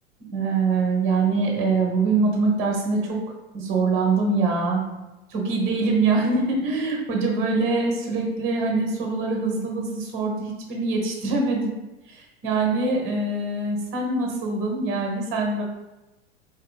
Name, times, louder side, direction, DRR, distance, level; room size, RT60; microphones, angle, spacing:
voice 1, 0.3-3.2 3.5-4.8 5.3-11.8 12.1-15.6, right 3 dB, 40° right, 1 dB, 1.0 m, -24 dB
3.9 x 2.9 x 2.3 m, 1.0 s
figure-of-eight pair, 90°, 33 cm